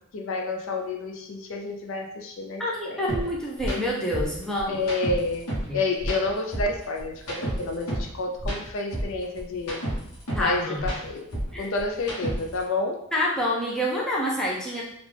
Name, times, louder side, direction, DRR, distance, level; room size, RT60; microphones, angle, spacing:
voice 1, 0.1-3.2 4.7-5.4 5.7-9.8 10.4-11.3 11.6-13.0, left 2 dB, 65° left, 3 dB, 0.5 m, -29 dB
voice 2, 2.6-4.8 5.7-5.8 10.3-10.8 11.5-11.7 13.1-14.8, left 1 dB, 5° left, -5 dB, 0.5 m, -27 dB
sound 1, 3.1-3.2 3.6-3.8 4.1-5.7 6.0-8.1 8.4-10.5 10.8-12.6, right 1 dB, 85° left, 1.0 m, -31 dB
3.6 x 2.4 x 3.2 m, 0.79 s
head